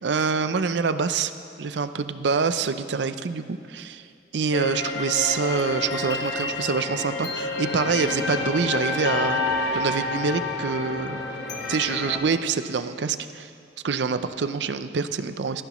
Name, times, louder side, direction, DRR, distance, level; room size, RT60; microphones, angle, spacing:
voice 1, 0.0-1.3 1.6-4.1 4.3-9.4 9.7-11.2 11.7-13.5 13.8-15.6, right 5 dB, 75° right, 11 dB, 0.5 m, -26 dB
sound 1, 4.5-12.2, left 3 dB, 70° left, 1.4 m, -29 dB
18.0 x 14.5 x 3.1 m, 2.4 s
head